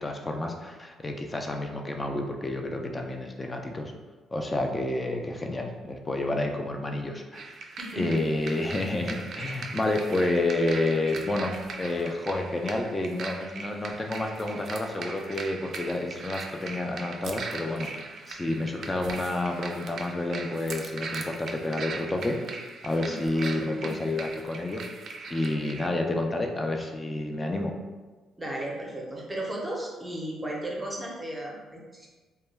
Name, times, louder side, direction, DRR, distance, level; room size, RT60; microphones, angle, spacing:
voice 1, 0.0-3.9 4.3-7.4 8.0-22.4 22.8-24.8 25.3-27.8, left 2 dB, 25° left, 3 dB, 0.4 m, -29 dB
sound 1, 7.3-25.9, right 4 dB, 60° right, 0.3 m, -40 dB
voice 2, 23.4-23.9 28.4-32.1, right 1 dB, 15° right, -2 dB, 0.7 m, -35 dB
2.2 x 2.2 x 3.3 m, 1.3 s
cardioid pair, 90°, 0 cm